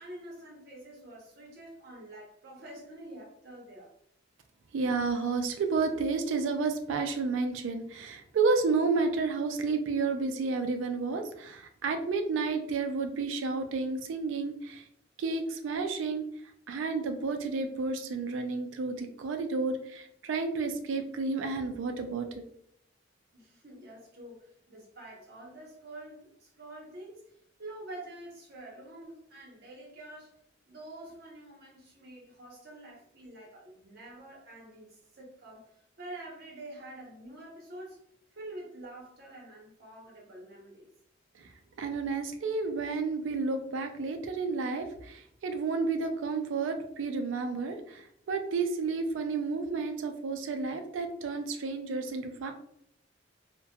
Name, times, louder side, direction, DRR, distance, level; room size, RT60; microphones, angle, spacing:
voice 1, 0.0-3.9 23.3-27.3 27.6-30.3 30.7-35.7 36.0-38.0 38.3-40.9, right 1 dB, 55° right, -2 dB, 0.9 m, -47 dB
voice 2, 4.7-14.9 15.2-16.3 16.7-22.4 41.3-41.5 41.8-52.5, right 4 dB, 80° right, 6 dB, 0.4 m, -31 dB
2.7 x 2.2 x 2.2 m, 0.72 s
head